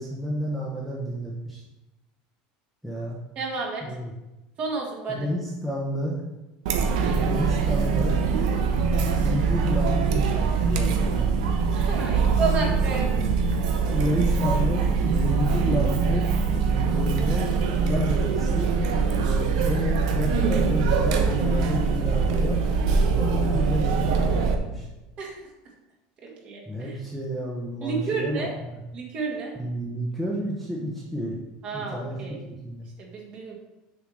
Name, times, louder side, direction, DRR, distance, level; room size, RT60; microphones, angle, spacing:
voice 1, 0.0-1.6 2.8-3.2 3.8-4.1 5.1-6.2 7.1-8.2 8.7-11.4 13.9-18.7 19.1-22.6 23.1-24.9 26.7-28.8 29.5-31.4 31.7-32.9, equal, ahead, -5 dB, 0.9 m, -31 dB
voice 2, 3.4-3.8 4.6-5.3 11.7-13.2 25.2-25.3 26.2-27.0 27.8-28.5 28.9-29.6 31.6-32.4 33.0-33.5, right 4 dB, 35° right, 0 dB, 1.7 m, -31 dB
Chatter, 6.7-24.6, right 5 dB, 85° right, 1.1 m, -23 dB
7.0 x 4.6 x 6.4 m, 1.0 s
cardioid pair, 165°, 4 cm